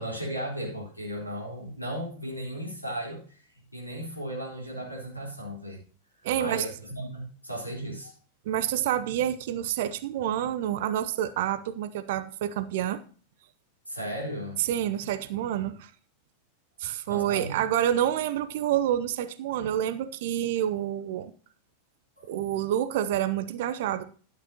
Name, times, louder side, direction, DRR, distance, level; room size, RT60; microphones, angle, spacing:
voice 1, 0.0-5.8 6.2-8.1 13.9-14.6 17.1-17.6 22.2-22.3, right 1 dB, 90° left, -2 dB, 4.1 m, -36 dB
voice 2, 6.2-6.6 8.5-13.0 14.6-15.9 16.8-21.3 22.3-24.0, right 11 dB, 55° right, 13 dB, 0.7 m, -28 dB
12.5 x 9.0 x 2.9 m, 0.41 s
figure-of-eight pair, 90°, 0 cm